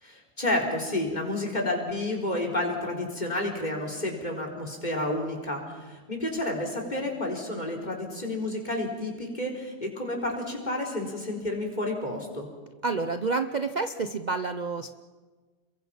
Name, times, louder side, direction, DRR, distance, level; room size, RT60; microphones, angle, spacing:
voice 1, 0.0-12.5, left 1 dB, 35° left, 0 dB, 4.4 m, -30 dB
voice 2, 12.8-15.0, right 4 dB, 40° right, 8 dB, 0.8 m, -29 dB
30.0 x 22.5 x 5.8 m, 1.4 s
omnidirectional pair, 1.3 m